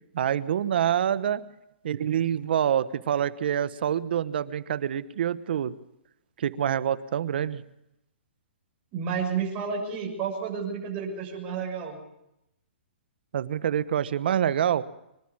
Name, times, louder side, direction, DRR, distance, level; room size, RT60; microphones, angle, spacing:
voice 1, 0.1-1.4 1.8-5.8 6.4-7.6 13.3-14.8, right 9 dB, 65° right, 16 dB, 1.1 m, -26 dB
voice 2, 8.9-12.0, right 6 dB, 30° right, -1 dB, 6.8 m, -31 dB
25.0 x 12.5 x 8.7 m, 0.83 s
hypercardioid pair, 140°, 6 cm